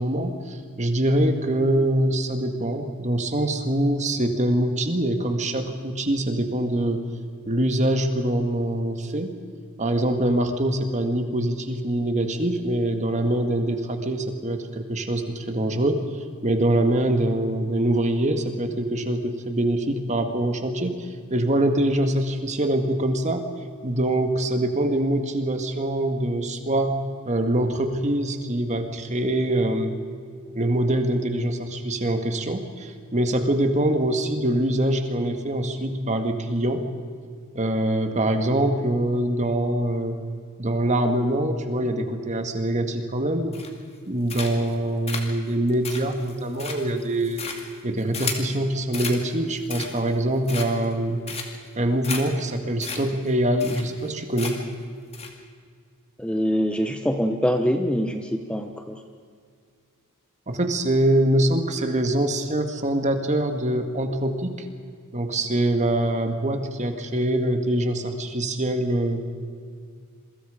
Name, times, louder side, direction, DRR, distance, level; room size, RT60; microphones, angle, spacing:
voice 1, 0.0-7.0 7.5-9.4 9.8-16.1 16.4-23.4 23.8-27.0 27.3-30.0 30.6-36.9 37.5-40.2 40.6-43.6 44.1-47.4 47.8-51.3 51.8-54.6 60.5-64.7 65.1-69.2, right 1 dB, 30° right, 6 dB, 1.9 m, -24 dB
sound 1, 43.5-43.9 44.3-44.7 45.1-48.5 48.9-49.2 49.6-50.1 50.5-50.9 51.3-51.7 52.0-52.2 52.5-52.6 52.8-53.0 53.3-53.4 53.6-54.1 54.4-54.7 55.1-55.3, left 5 dB, 30° left, 2.4 m, -33 dB
voice 2, 56.2-59.0, equal, 5° left, 5 dB, 1.0 m, -24 dB
27.5 x 23.5 x 5.1 m, 2.1 s
head